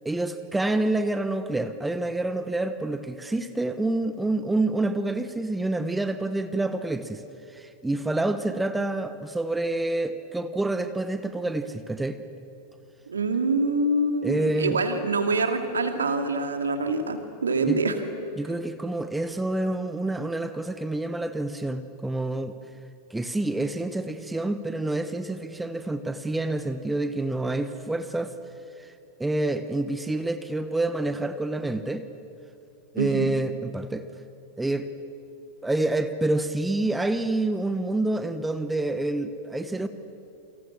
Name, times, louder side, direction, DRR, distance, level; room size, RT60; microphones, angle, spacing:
voice 1, 0.0-7.2 7.5-12.2 14.2-14.8 17.7-17.8 18.4-22.5 23.1-28.3 28.8-28.9 29.2-32.0 32.9-34.1 34.6-34.9 35.6-39.9, right 2 dB, 5° right, 10 dB, 1.2 m, -27 dB
voice 2, 13.1-17.9 33.0-33.3, right 2 dB, 70° right, 7 dB, 2.5 m, -25 dB
29.0 x 25.0 x 7.4 m, 2.8 s
figure-of-eight pair, 90°, 0 cm